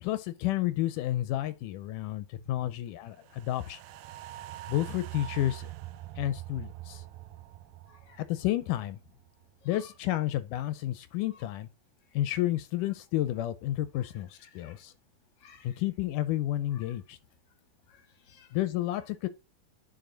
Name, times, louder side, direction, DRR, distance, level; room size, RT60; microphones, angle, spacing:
voice 1, 0.0-3.8 4.7-5.7 6.2-7.0 8.2-9.0 9.7-11.7 12.1-14.9 15.6-17.2 18.5-19.3, left 14 dB, 80° left, 2.1 m, -31 dB
sound 1, 3.2-9.6 10.0-10.1, right 16 dB, 90° right, 2.4 m, -44 dB
voice 2, 7.9-8.2 9.6-9.9 11.2-11.5 12.1-12.2 13.9-14.7 15.4-15.8 16.7-17.0 17.9-18.5 18.9-19.0, left 5 dB, 35° left, 1.3 m, -57 dB
10.5 x 4.7 x 3.9 m
omnidirectional pair, 3.9 m